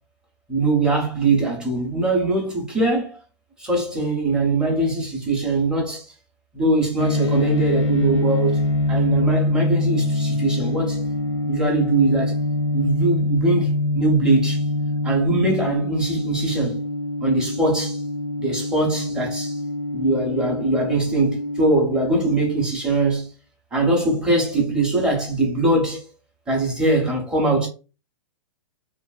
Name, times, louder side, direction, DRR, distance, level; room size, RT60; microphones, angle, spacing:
voice 1, 0.5-3.2 3.6-6.1 6.5-8.6 8.9-11.0 11.5-12.4 12.7-14.6 15.0-16.8 17.2-18.0 18.4-19.6 19.9-23.3 23.7-26.1 26.5-27.7, right 2 dB, 5° right, 0.5 m, -22 dB
sound 1, 7.0-21.8, left 2 dB, 85° left, 0.6 m, -24 dB
2.9 x 2.6 x 2.3 m
hypercardioid pair, 170°, 16 cm